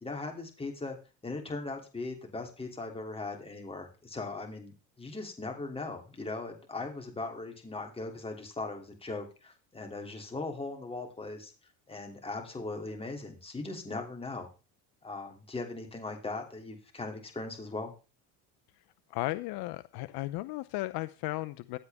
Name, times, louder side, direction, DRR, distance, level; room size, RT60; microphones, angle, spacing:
voice 1, 0.0-1.0 1.2-11.5 11.9-14.5 15.0-17.9, left 3 dB, 15° left, 3 dB, 3.0 m, -39 dB
voice 2, 19.1-21.8, left 19 dB, 65° left, 12 dB, 0.7 m, -35 dB
15.0 x 8.1 x 3.5 m, 0.32 s
supercardioid pair, 110°, 41 cm